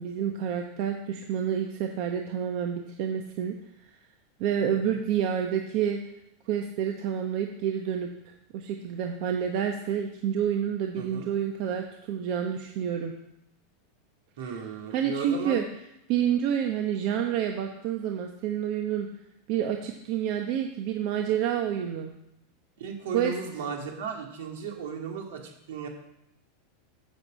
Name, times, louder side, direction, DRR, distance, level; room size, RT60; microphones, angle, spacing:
voice 1, 0.0-3.6 4.4-6.0 6.5-8.1 8.5-13.1 14.4-14.6 14.9-15.6 16.1-19.1 19.5-22.1 23.1-23.3, right 9 dB, 55° right, 3 dB, 1.0 m, -28 dB
voice 2, 11.0-11.3 14.4-15.6 22.8-25.9, right 5 dB, 80° right, 2 dB, 2.4 m, -35 dB
8.4 x 6.5 x 7.6 m, 0.82 s
supercardioid pair, 140°, 0 cm